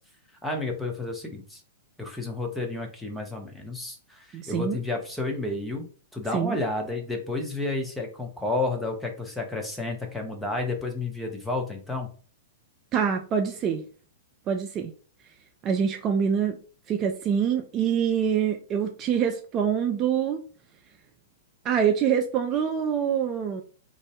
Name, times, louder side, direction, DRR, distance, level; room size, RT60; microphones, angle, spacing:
voice 1, 0.4-1.6 2.0-5.9 6.1-12.1, left 2 dB, 5° left, 1 dB, 0.7 m, -31 dB
voice 2, 4.3-4.8 6.3-6.6 12.9-13.8 14.5-14.9 15.6-16.6 16.9-20.4 21.6-23.6, right 7 dB, 30° right, 4 dB, 0.3 m, -25 dB
2.5 x 2.0 x 3.5 m, 0.40 s
figure-of-eight pair, 105°, 0 cm